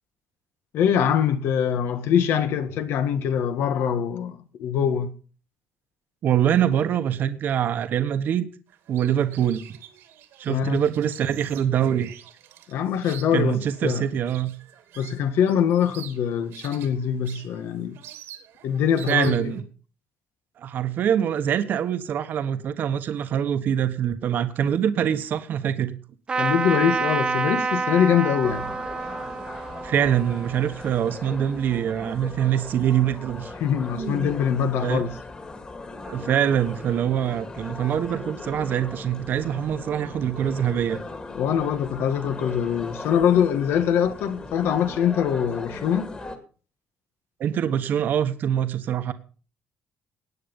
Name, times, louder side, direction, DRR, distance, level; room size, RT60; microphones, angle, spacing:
voice 1, 0.7-5.1 10.5-10.8 12.7-14.1 15.0-18.0 18.6-19.5 26.3-28.7 33.6-35.1 41.3-46.1, left 8 dB, 75° left, 1.7 m, -23 dB
voice 2, 6.2-8.5 8.9-9.8 10.4-12.1 13.3-14.5 19.1-19.6 20.6-26.0 29.8-33.5 34.0-34.3 34.8-35.0 36.0-41.0 47.4-49.1, right 9 dB, 55° right, 1.2 m, -24 dB
sound 1, 8.7-19.6, right 11 dB, 90° right, 2.7 m, -46 dB
Trumpet, 26.3-31.8, right 4 dB, 25° right, 1.0 m, -28 dB
sound 2, 28.4-46.4, left 3 dB, 25° left, 2.3 m, -38 dB
17.5 x 9.4 x 5.4 m
cardioid pair, 160°, 4 cm